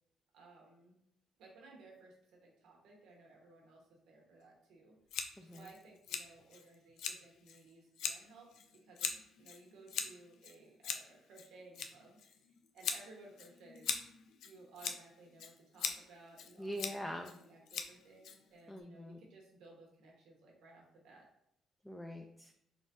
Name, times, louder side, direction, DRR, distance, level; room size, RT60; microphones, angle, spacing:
voice 1, 0.3-1.0 1.4-5.0 5.4-12.4 12.7-13.9 14.4-17.0 17.4-21.3, right 3 dB, 85° right, -1 dB, 1.1 m, -59 dB
Scissors, 5.1-18.8, left 7 dB, 80° left, 0.4 m, -43 dB
voice 2, 16.6-17.3 18.7-19.2 21.9-22.5, equal, 5° left, 3 dB, 0.3 m, -43 dB
4.0 x 3.6 x 2.5 m, 0.75 s
cardioid pair, 90°, 0 cm